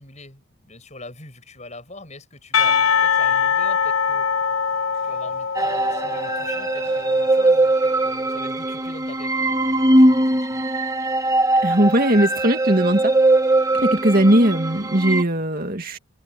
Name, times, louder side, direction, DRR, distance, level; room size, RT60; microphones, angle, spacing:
voice 1, 0.0-4.3 5.0-10.7, left 2 dB, 30° left, 8.0 m, -43 dB
Percussion, 2.5-7.4, left 6 dB, 70° left, 1.4 m, -22 dB
sound 1, 5.5-15.2, right 1 dB, 15° right, 1.1 m, -20 dB
voice 2, 11.6-13.2 13.8-16.0, right 1 dB, 45° right, 2.2 m, -19 dB
head